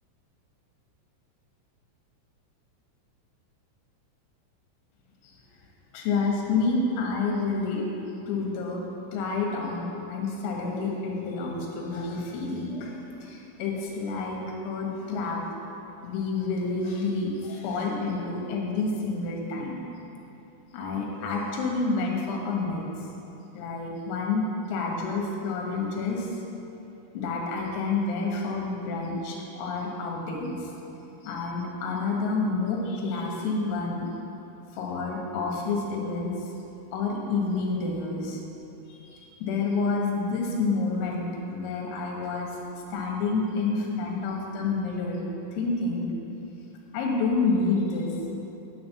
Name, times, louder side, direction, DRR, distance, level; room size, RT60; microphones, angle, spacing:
voice 1, 5.9-7.9 8.3-8.8 9.1-14.4 14.6-15.4 16.0-19.8 20.7-22.8 23.5-24.4 24.7-26.3 27.1-30.7 31.2-34.1 34.7-36.5 36.9-38.4 38.9-42.5 42.9-45.2 45.5-46.1 46.9-48.1, left 3 dB, 85° left, -1 dB, 4.0 m, -29 dB
9.5 x 9.2 x 4.6 m, 3.0 s
omnidirectional pair, 5.8 m